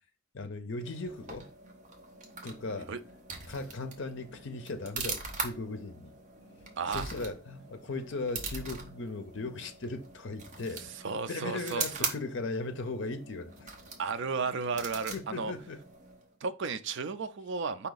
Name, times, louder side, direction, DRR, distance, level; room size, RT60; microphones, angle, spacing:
voice 1, 0.3-1.4 2.4-2.9 3.5-6.1 6.9-13.7 15.1-15.8, left 3 dB, 60° left, 0.6 m, -38 dB
sound 1, 0.8-16.3, right 4 dB, 35° right, 0.9 m, -42 dB
voice 2, 11.0-12.1 14.0-15.5 16.4-17.9, right 5 dB, 60° right, 0.5 m, -33 dB
4.8 x 2.8 x 3.9 m
head